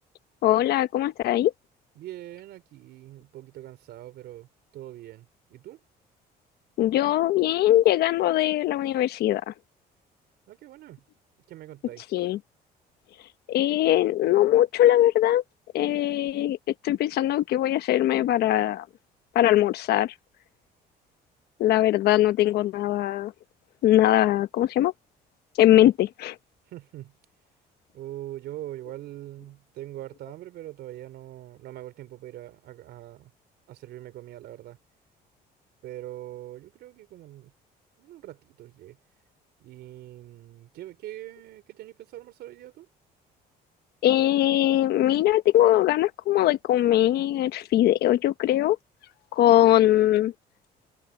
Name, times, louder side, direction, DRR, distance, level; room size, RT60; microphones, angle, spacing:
voice 1, 0.4-1.5 6.8-9.5 12.1-12.4 13.5-15.4 15.7-16.6 16.8-18.8 19.3-20.1 21.6-23.3 23.8-24.9 25.6-26.3 44.0-48.8 49.3-50.3, left 13 dB, 70° left, 1.1 m, -21 dB
voice 2, 2.0-4.5 4.7-5.8 10.5-11.0 11.5-12.0 26.7-27.2 27.9-33.3 33.7-34.8 35.8-37.5 38.0-39.0 39.6-42.9, right 14 dB, 75° right, 3.8 m, -42 dB
cardioid pair, 110°, 17 cm